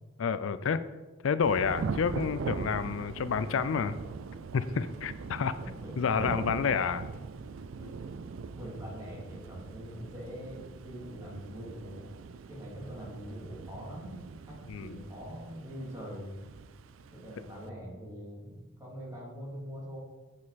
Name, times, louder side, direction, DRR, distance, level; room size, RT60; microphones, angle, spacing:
voice 1, 0.2-0.8 1.2-4.0 4.5-5.6 6.0-7.0 14.7-15.0, left 6 dB, 80° left, 14 dB, 0.4 m, -29 dB
Thunder / Rain, 1.4-17.7, right 5 dB, 85° right, 0.4 m, -41 dB
voice 2, 7.8-8.1 8.5-12.0 12.5-16.4 17.1-20.0, equal, 20° right, -5 dB, 2.7 m, -43 dB
7.3 x 6.5 x 4.1 m, 1.2 s
head